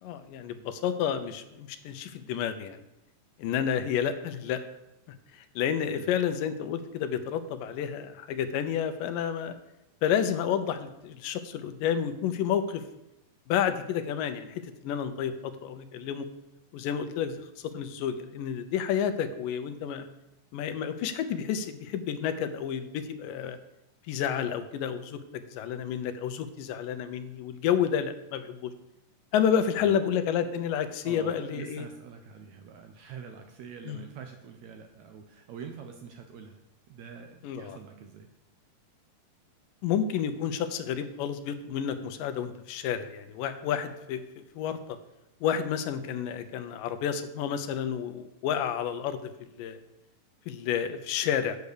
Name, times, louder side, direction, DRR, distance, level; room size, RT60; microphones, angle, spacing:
voice 1, 0.0-2.8 3.4-4.6 5.6-9.6 10.0-12.8 13.5-16.3 16.7-20.1 20.5-23.6 24.1-28.7 29.3-31.9 33.9-34.0 37.4-37.8 39.8-45.0 45.4-49.8 50.5-51.6, left 8 dB, 85° left, 9 dB, 2.3 m, -30 dB
voice 2, 31.0-36.6 36.9-38.3, right 6 dB, 75° right, 5 dB, 1.7 m, -45 dB
8.2 x 6.7 x 6.7 m, 0.89 s
omnidirectional pair, 3.9 m